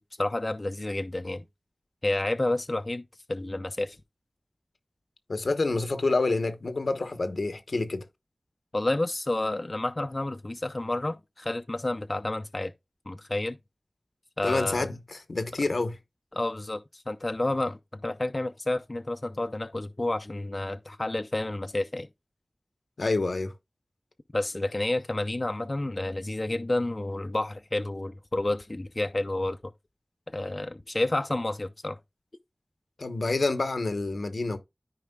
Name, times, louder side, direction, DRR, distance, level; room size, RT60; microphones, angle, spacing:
voice 1, 0.2-1.4 2.0-3.0 3.3-4.0 8.7-12.7 13.1-13.6 14.4-14.9 16.3-22.1 24.3-29.6 30.3-32.0, left 2 dB, 40° left, 0.5 m, -30 dB
voice 2, 5.3-8.0 14.4-16.0 23.0-23.5 33.0-34.6, left 3 dB, 85° left, 1.0 m, -28 dB
13.5 x 4.8 x 2.3 m
wide cardioid pair, 65°, 0 cm